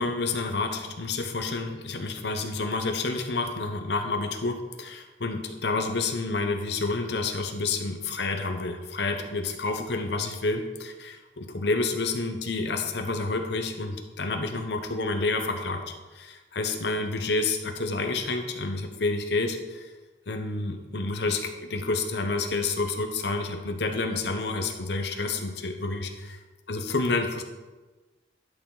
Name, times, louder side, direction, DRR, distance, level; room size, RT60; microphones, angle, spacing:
voice 1, 0.0-15.8 16.2-19.8 20.3-26.1 26.7-27.4, left 3 dB, 65° left, 5 dB, 0.9 m, -29 dB
11.0 x 6.6 x 3.9 m, 1.2 s
head